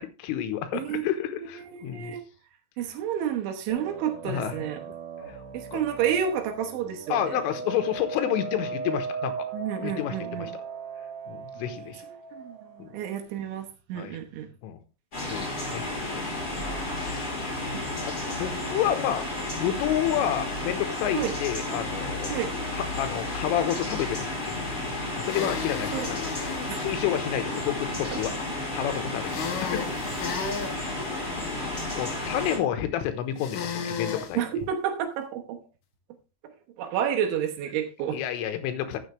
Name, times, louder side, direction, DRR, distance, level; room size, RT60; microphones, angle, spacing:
voice 1, 0.0-2.2 4.2-4.5 5.3-5.4 5.7-5.8 7.1-9.5 9.8-10.6 11.3-12.0 12.8-12.9 13.9-14.2 14.6-14.8 15.2-15.8 16.1-17.4 18.1-19.3 19.6-22.4 22.7-26.3 26.8-28.4 28.7-29.8 30.7-31.0 32.0-34.4 38.1-39.0, left 10 dB, 85° left, 9 dB, 3.7 m, -30 dB
voice 2, 1.7-2.2 2.8-4.8 5.5-7.4 9.5-10.5 12.3-14.5 16.6-16.7 21.1-21.3 22.3-22.5 25.9-26.1 26.7-26.9 28.1-28.2 34.3-35.6 36.8-38.2, right 9 dB, 75° right, 5 dB, 3.4 m, -30 dB
sound 1, 3.7-12.9, right 4 dB, 50° right, 2.9 m, -38 dB
sound 2, 15.1-32.6, left 2 dB, 20° left, 4.8 m, -32 dB
sound 3, 25.2-26.7 29.3-30.8 33.4-34.3, left 6 dB, 65° left, 2.3 m, -34 dB
13.0 x 7.8 x 3.3 m, 0.31 s
omnidirectional pair, 5.7 m